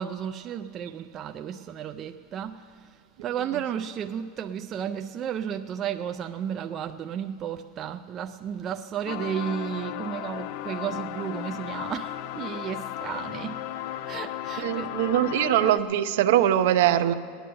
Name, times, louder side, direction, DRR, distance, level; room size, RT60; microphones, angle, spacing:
voice 1, 0.0-2.6 3.2-13.6 14.1-14.9, right 9 dB, 25° right, 7 dB, 0.3 m, -33 dB
sound 1, 9.1-15.8, left 12 dB, 45° left, 0.4 m, -35 dB
voice 2, 14.6-17.1, right 12 dB, 60° right, 11 dB, 0.6 m, -22 dB
18.0 x 10.0 x 6.9 m, 2.3 s
supercardioid pair, 170°, 0 cm